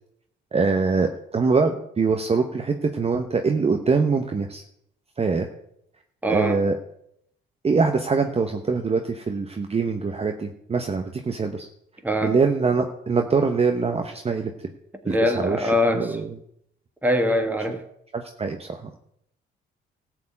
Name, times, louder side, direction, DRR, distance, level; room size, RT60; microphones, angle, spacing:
voice 1, 0.5-4.6 5.2-5.5 6.3-6.7 7.6-11.7 12.2-14.5 15.1-16.3 17.6-17.8 18.1-18.9, right 4 dB, 30° right, 1.0 m, -23 dB
voice 2, 6.2-6.6 12.0-12.4 15.0-16.2 17.0-17.8, left 1 dB, 10° right, 1.9 m, -23 dB
13.5 x 4.7 x 8.7 m
cardioid pair, 90°, 20 cm